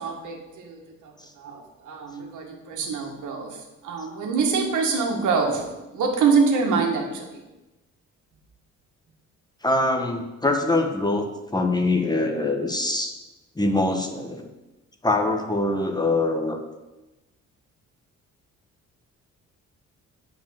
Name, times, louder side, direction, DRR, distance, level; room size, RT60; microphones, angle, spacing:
voice 1, 0.0-5.7 5.9-7.4, right 5 dB, 80° right, 1 dB, 1.8 m, -25 dB
voice 2, 9.6-13.1 13.6-14.5 15.0-16.6, left 2 dB, 15° left, 4 dB, 1.3 m, -23 dB
8.5 x 5.2 x 7.5 m, 1.0 s
cardioid pair, 90°, 30 cm